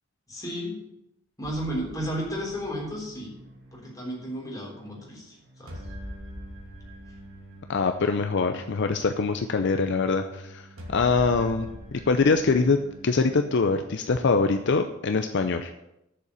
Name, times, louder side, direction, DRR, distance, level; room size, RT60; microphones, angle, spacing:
voice 1, 0.3-0.8 1.4-3.3 3.7-5.8, equal, 15° left, -3 dB, 3.6 m, -33 dB
sound 1, 1.4-13.5, equal, 65° right, 2.6 m, -45 dB
voice 2, 7.7-12.8 13.0-15.7, left 4 dB, 55° left, 7 dB, 0.6 m, -24 dB
7.6 x 6.9 x 8.2 m, 0.86 s
head